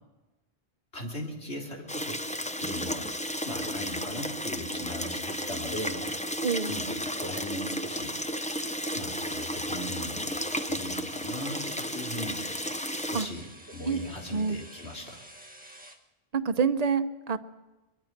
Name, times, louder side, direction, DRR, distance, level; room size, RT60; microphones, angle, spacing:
voice 1, 0.9-2.2 2.6-3.1 3.4-6.1 6.7-8.2 8.9-10.4 10.7-12.4 13.1-15.2, left 1 dB, 90° left, 0 dB, 3.8 m, -38 dB
sound 1, 1.9-13.3, equal, 10° left, 0.7 m, -33 dB
voice 2, 6.4-6.7 13.1-13.3 13.8-14.0 14.3-14.6 16.3-17.4, right 5 dB, 40° right, 10 dB, 0.9 m, -27 dB
sound 2, 10.3-16.0, right 1 dB, 10° right, 1.3 m, -50 dB
23.5 x 22.5 x 6.0 m, 1.1 s
omnidirectional pair, 1.1 m